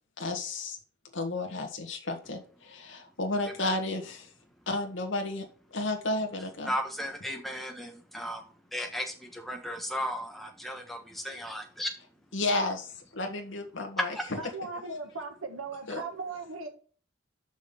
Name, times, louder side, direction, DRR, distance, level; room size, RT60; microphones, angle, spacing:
voice 1, 0.2-0.8 1.1-4.3 4.7-6.7 12.3-14.2 15.9-16.0, left 2 dB, 60° left, 1.7 m, -32 dB
voice 2, 6.6-11.9 14.1-14.2, equal, ahead, 1.4 m, -35 dB
voice 3, 14.4-16.7, right 3 dB, 80° right, 1.4 m, -38 dB
6.2 x 5.6 x 6.9 m
head